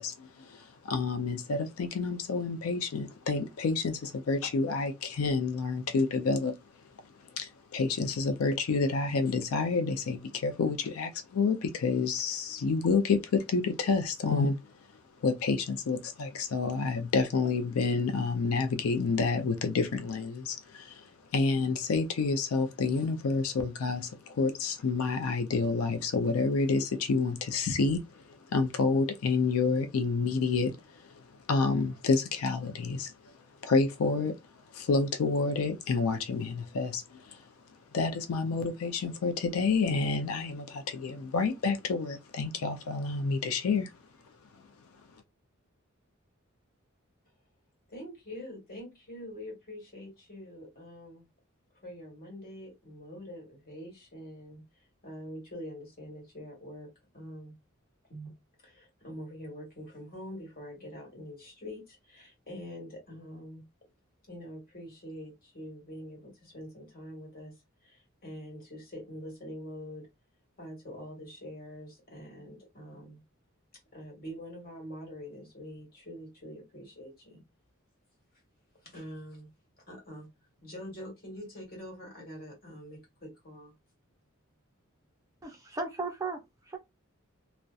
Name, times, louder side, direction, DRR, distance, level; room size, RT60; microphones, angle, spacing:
voice 1, 0.0-6.5 7.2-14.6 15.2-33.3 33.6-34.3 34.7-37.5 37.9-43.9, left 4 dB, 90° left, 0.4 m, -29 dB
voice 2, 47.9-51.2 51.8-54.6 55.0-56.9 57.1-57.5 58.1-58.3 58.6-63.6 64.3-67.5 67.8-70.1 70.6-73.2 73.9-77.4 78.8-79.5 79.8-80.3 80.6-83.7, equal, 45° left, 1.4 m, -45 dB
voice 3, 85.4-86.8, right 3 dB, 15° right, 0.4 m, -36 dB
2.6 x 2.1 x 2.3 m
head